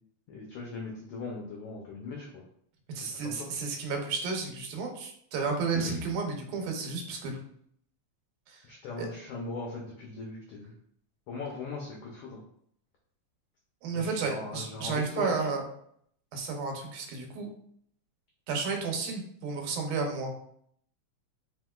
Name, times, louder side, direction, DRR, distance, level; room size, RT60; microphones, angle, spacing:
voice 1, 0.3-2.4 2.9-3.5 5.7-6.1 8.7-10.7 11.3-12.4 13.9-15.5, left 3 dB, 85° left, -1 dB, 1.3 m, -39 dB
voice 2, 2.9-7.4 8.5-8.7 9.0-9.1 13.8-15.6 16.3-17.5 18.5-20.3, right 4 dB, 85° right, 2 dB, 2.2 m, -32 dB
5.4 x 2.9 x 2.3 m, 0.67 s
omnidirectional pair, 3.4 m